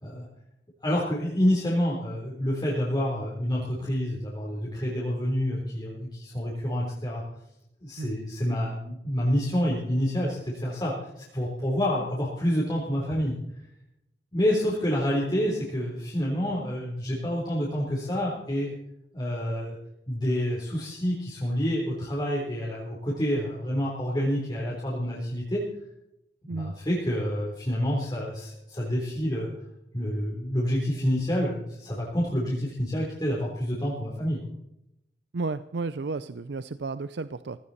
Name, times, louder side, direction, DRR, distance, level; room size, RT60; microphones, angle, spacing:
voice 1, 0.8-7.2 7.8-13.4 14.3-18.7 19.1-19.8 20.1-25.7 26.5-29.5 29.9-34.4, equal, 25° left, -4 dB, 3.7 m, -28 dB
voice 2, 35.3-37.6, right 3 dB, 75° right, 13 dB, 0.6 m, -33 dB
17.0 x 16.5 x 4.2 m, 0.81 s
head